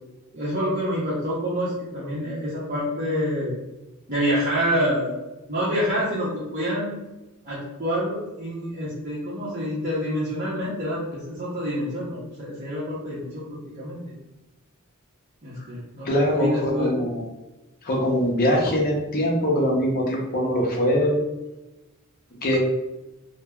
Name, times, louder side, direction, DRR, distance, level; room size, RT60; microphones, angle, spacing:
voice 1, 0.3-3.5 4.1-5.2 5.5-6.9 7.4-14.0 15.4-16.1 16.4-16.9, equal, 40° right, -8 dB, 0.6 m, -27 dB
voice 2, 16.0-17.2 17.8-21.2 22.4-22.6, equal, 40° left, -1 dB, 0.6 m, -22 dB
3.3 x 2.0 x 2.2 m, 1.0 s
head